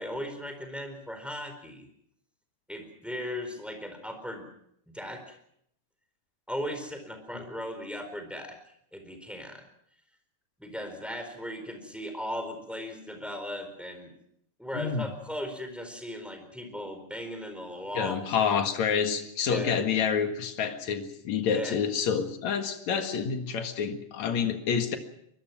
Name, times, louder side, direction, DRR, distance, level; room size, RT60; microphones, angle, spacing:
voice 1, 0.0-1.9 2.7-4.5 4.9-5.4 6.5-8.6 8.9-9.6 10.6-14.1 14.6-18.2 19.5-19.7 21.5-21.8, equal, ahead, 6 dB, 4.1 m, -37 dB
voice 2, 14.7-15.1 18.0-25.0, left 7 dB, 60° left, 6 dB, 3.0 m, -28 dB
24.0 x 21.0 x 6.0 m, 0.73 s
omnidirectional pair, 3.7 m